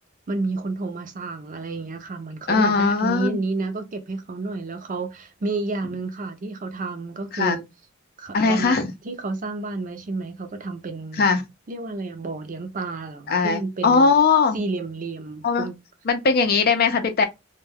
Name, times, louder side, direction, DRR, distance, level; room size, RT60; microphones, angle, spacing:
voice 1, 0.3-7.6 8.2-8.8 9.0-11.2 11.7-14.1 14.5-15.7, right 3 dB, 40° right, 0.5 m, -30 dB
voice 2, 2.5-3.4 7.3-7.6 8.3-8.9 11.2-11.4 13.3-14.6 15.4-15.7 16.1-17.3, left 4 dB, 50° left, 0.5 m, -19 dB
2.2 x 2.2 x 3.2 m
head